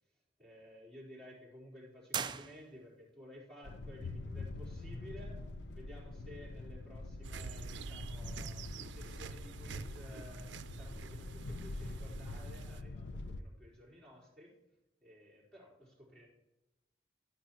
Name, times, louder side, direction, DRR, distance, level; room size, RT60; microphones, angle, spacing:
voice 1, 0.4-5.4 5.7-10.5 10.7-14.5 15.0-16.3, equal, 5° left, -8 dB, 4.0 m, -54 dB
sound 1, 2.1-3.1, right 7 dB, 25° right, 0.3 m, -40 dB
sound 2, 3.6-13.4, left 2 dB, 75° left, 0.6 m, -45 dB
sound 3, 7.2-12.8, right 4 dB, 80° right, 0.5 m, -47 dB
12.5 x 9.4 x 3.0 m, 0.98 s
head